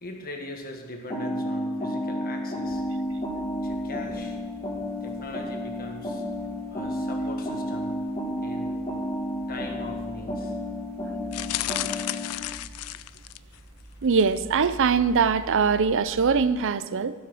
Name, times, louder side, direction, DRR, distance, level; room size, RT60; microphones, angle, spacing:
voice 1, 0.0-2.8 3.6-4.4 5.0-6.2 6.7-7.9 8.4-8.8 9.5-10.6, left 2 dB, 45° left, 2 dB, 1.6 m, -40 dB
sound 1, 1.1-12.4, left 1 dB, 20° left, 1.9 m, -31 dB
sound 2, 2.6-16.4, equal, 25° right, 2.2 m, -48 dB
sound 3, 11.3-13.6 14.1-14.4 14.7-14.8, left 15 dB, 75° left, 0.3 m, -33 dB
voice 2, 14.0-17.1, right 5 dB, 60° right, 14 dB, 0.5 m, -22 dB
14.5 x 6.0 x 6.2 m, 1.3 s
head